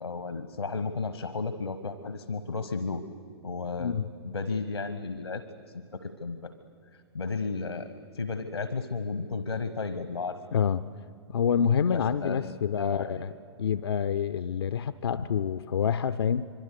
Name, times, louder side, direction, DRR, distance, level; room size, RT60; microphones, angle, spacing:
voice 1, 0.0-3.0 3.4-3.9 4.2-5.4 5.7-6.5 7.1-10.4 11.9-13.3 15.1-15.3, left 4 dB, 80° left, 11 dB, 1.1 m, -33 dB
voice 2, 10.5-10.8 11.3-13.3 13.6-16.5, left 7 dB, 65° left, 12 dB, 0.5 m, -27 dB
25.5 x 23.5 x 6.7 m, 2.3 s
figure-of-eight pair, 110°, 14 cm